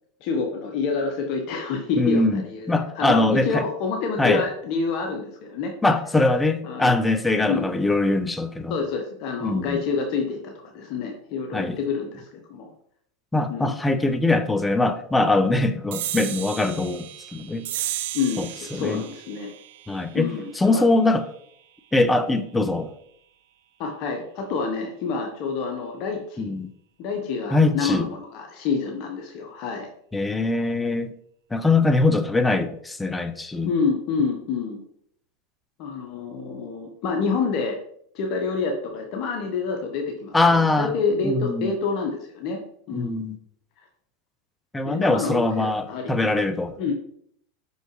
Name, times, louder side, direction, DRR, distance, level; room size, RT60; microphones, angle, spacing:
voice 1, 0.2-2.7 2.9-5.7 6.6-7.0 7.4-7.7 8.7-12.7 13.5-13.7 18.1-19.5 20.1-20.8 23.8-26.5 27.0-29.9 33.6-34.8 35.8-37.8 38.1-42.6 42.9-43.2 44.8-46.2 46.8-46.9, left 5 dB, 55° left, 0.9 m, -28 dB
voice 2, 2.0-3.6 4.2-4.4 5.8-8.8 9.4-9.8 11.5-11.8 13.3-17.7 18.4-19.0 19.9-21.3 21.9-22.9 26.4-26.7 27.5-28.1 30.1-31.1 31.5-33.7 40.3-40.9 41.2-41.7 42.9-43.4 44.7-46.7, left 2 dB, 10° left, 0.5 m, -22 dB
sound 1, 15.9-22.8, right 13 dB, 70° right, 0.5 m, -36 dB
5.7 x 5.5 x 3.0 m
hypercardioid pair, 105°, 0 cm